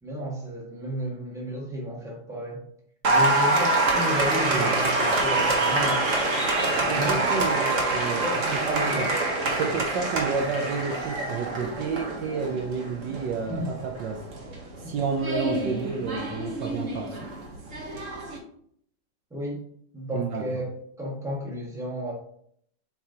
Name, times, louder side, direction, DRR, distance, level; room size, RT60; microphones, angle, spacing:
voice 1, 0.0-2.6 3.0-6.1 6.7-7.3 8.2-9.1 13.5-13.7 14.8-14.9 19.3-19.6 19.9-20.7 21.0-22.1, equal, ahead, -3 dB, 1.3 m, -33 dB
Applause, 3.0-18.4, right 2 dB, 45° right, 1.3 m, -26 dB
voice 2, 6.9-8.2 8.7-9.1 9.6-14.2 14.8-17.3 20.1-20.5, right 5 dB, 70° right, 3 dB, 1.2 m, -30 dB
7.0 x 4.8 x 2.8 m, 0.65 s
omnidirectional pair, 2.2 m